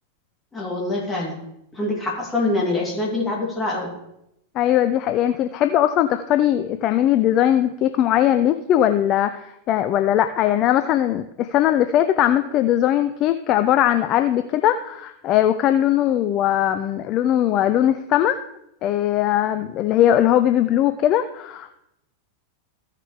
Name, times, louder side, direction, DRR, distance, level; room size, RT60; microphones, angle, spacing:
voice 1, 0.5-1.4 1.7-3.9, left 2 dB, 15° left, -3 dB, 3.1 m, -25 dB
voice 2, 4.6-18.4 18.8-21.8, left 11 dB, 35° left, 10 dB, 0.4 m, -20 dB
15.0 x 6.5 x 3.4 m, 0.81 s
figure-of-eight pair, 90°, 0 cm